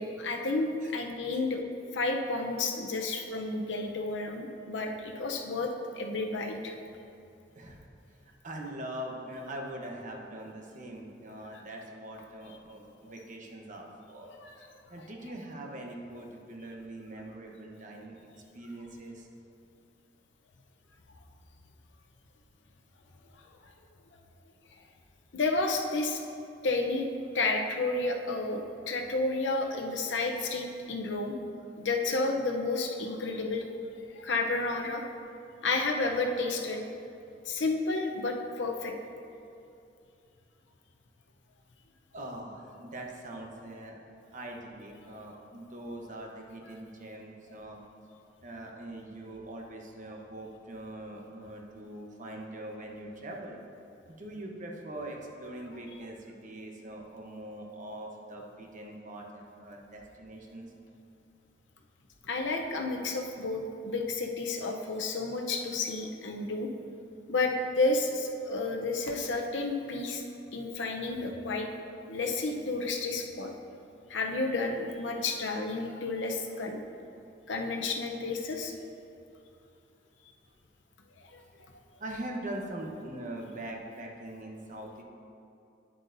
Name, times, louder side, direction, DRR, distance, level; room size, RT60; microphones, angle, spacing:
voice 1, 0.0-1.6 1.9-5.7 6.0-6.7 11.4-11.6 14.2-14.7 14.9-15.0 23.3-23.4 25.3-26.2 26.6-27.1 27.3-31.3 31.8-33.7 34.1-35.0 35.6-36.8 37.5-38.9 62.2-66.7 67.3-70.2 70.5-71.7 72.1-73.5 74.1-76.8 77.5-78.7 81.2-81.4, left 3 dB, 80° left, 3 dB, 0.7 m, -31 dB
voice 2, 7.5-7.9 8.4-14.3 14.9-18.2 18.5-19.3 42.1-44.0 44.3-47.8 48.4-53.6 54.1-60.7 82.0-85.0, right 1 dB, 45° right, 0 dB, 1.0 m, -42 dB
10.0 x 7.7 x 2.6 m, 2.6 s
head